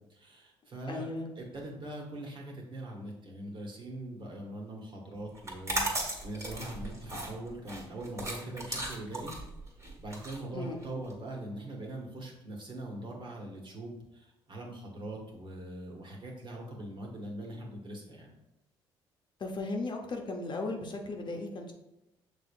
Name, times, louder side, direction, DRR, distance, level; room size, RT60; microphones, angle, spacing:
voice 1, 0.1-1.1 1.4-9.3 9.8-18.3, right 1 dB, 40° right, 0 dB, 1.4 m, -42 dB
voice 2, 0.9-1.3 10.5-10.8 19.4-21.7, left 2 dB, 40° left, 2 dB, 0.9 m, -36 dB
sound 1, 5.4-11.1, right 1 dB, 25° right, 1.5 m, -36 dB
6.0 x 3.4 x 2.5 m, 0.91 s
hypercardioid pair, 60°, 12 cm